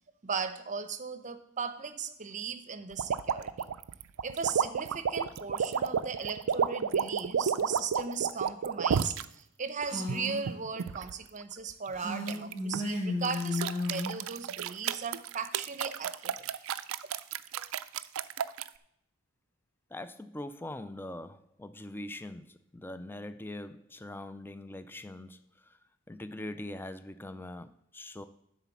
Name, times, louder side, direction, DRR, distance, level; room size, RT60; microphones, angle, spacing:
voice 1, 0.2-3.5 4.2-16.5, right 5 dB, 35° right, 11 dB, 0.7 m, -37 dB
sound 1, 3.0-9.2 9.8-11.1 12.3-12.8 13.2-18.7, right 7 dB, 65° right, 0.4 m, -31 dB
Female speech woman speaking, 9.8-10.4 11.9-14.2, left 2 dB, 40° left, 4.6 m, -34 dB
voice 2, 19.9-25.4 26.1-28.2, left 1 dB, 10° left, 11 dB, 0.4 m, -42 dB
11.0 x 4.1 x 7.2 m, 0.74 s
head